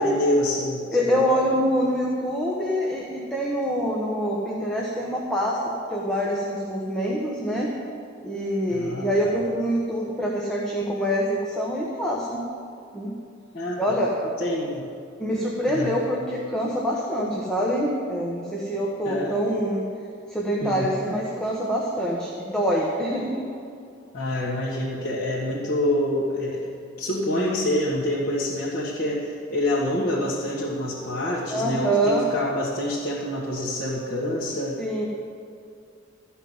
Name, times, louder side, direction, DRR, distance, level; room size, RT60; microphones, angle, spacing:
voice 1, 0.0-1.3 8.7-9.3 13.5-14.0 14.4-14.8 15.7-16.0 19.0-19.4 20.6-21.1 24.1-26.7 27.0-34.8, left 1 dB, 55° left, -7 dB, 1.7 m, -27 dB
voice 2, 0.9-7.7 8.2-12.4 12.9-13.1 13.8-14.1 15.2-19.9 20.3-23.5 31.5-32.3 34.8-35.1, equal, 5° left, -3 dB, 1.2 m, -25 dB
14.0 x 5.8 x 9.5 m, 2.5 s
head